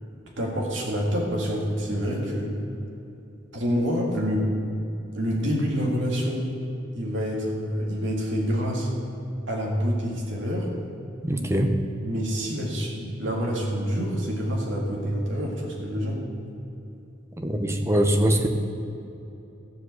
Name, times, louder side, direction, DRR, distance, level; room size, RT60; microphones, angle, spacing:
voice 1, 0.4-2.5 3.5-4.5 5.2-6.5 6.9-8.9 9.5-10.7 12.0-16.2, equal, 65° right, -2 dB, 1.8 m, -27 dB
voice 2, 11.2-11.7 17.4-18.5, right 1 dB, 15° right, 4 dB, 0.7 m, -22 dB
14.5 x 5.1 x 8.0 m, 2.9 s
head